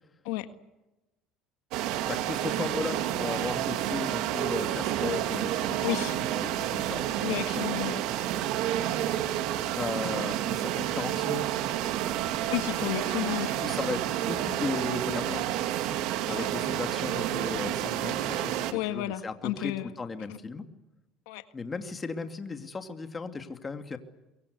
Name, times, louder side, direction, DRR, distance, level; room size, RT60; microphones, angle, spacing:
sound 1, 1.7-18.7, right 12 dB, 70° right, 2.2 m, -30 dB
voice 1, 2.1-7.0 9.8-11.4 13.6-15.5 16.3-20.7 21.5-24.0, left 4 dB, 20° left, 7 dB, 2.5 m, -36 dB
voice 2, 5.8-6.2 7.2-8.0 12.5-13.6 16.3-16.5 18.7-19.9 20.3-20.4 21.3-21.4, left 15 dB, 85° left, 9 dB, 1.6 m, -32 dB
23.5 x 23.0 x 8.2 m, 1.0 s
supercardioid pair, 110°, 0 cm